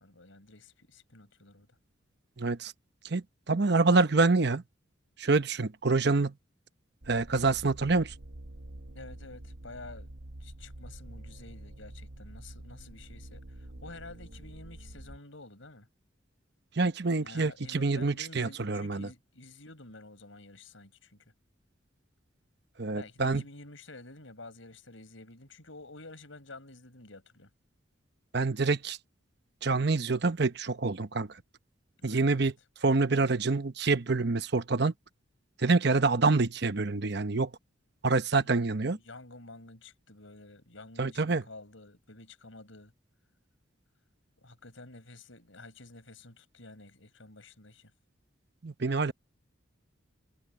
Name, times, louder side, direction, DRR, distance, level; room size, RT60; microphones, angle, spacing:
voice 1, 0.0-1.7 8.9-10.1 10.4-15.9 17.2-21.3 22.9-27.5 32.0-32.5 38.4-42.9 44.4-47.9, left 2 dB, 80° left, 5.4 m, -50 dB
voice 2, 2.4-2.7 3.0-4.6 5.2-6.3 7.1-8.1 16.8-19.1 22.8-23.4 28.3-29.0 29.6-31.3 32.0-32.5 32.8-34.9 35.6-37.5 38.0-39.0 41.0-41.4 48.6-49.1, right 3 dB, 55° right, 0.9 m, -26 dB
sound 1, 7.0-15.2, right 1 dB, 80° right, 1.2 m, -47 dB
head